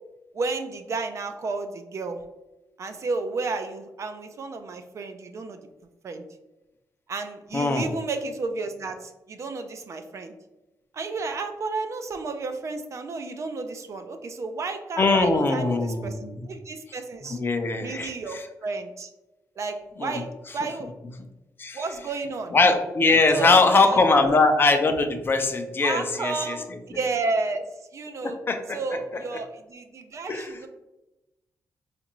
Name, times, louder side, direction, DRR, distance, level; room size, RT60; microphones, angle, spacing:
voice 1, 0.3-2.2 2.8-5.6 6.0-6.2 7.1-10.3 10.9-17.4 17.8-19.1 19.6-20.9 21.7-22.5 23.3-24.4 25.8-27.7 27.9-28.4 28.7-30.7, right 3 dB, 50° right, 7 dB, 0.4 m, -32 dB
voice 2, 7.5-7.9 15.0-16.3 17.2-18.4 20.0-20.2 21.6-21.8 22.5-26.8 28.2-29.0 29.3-29.4 30.3-30.5, left 3 dB, 35° left, 7 dB, 0.5 m, -22 dB
4.3 x 2.5 x 3.0 m, 0.99 s
wide cardioid pair, 130°, 7 cm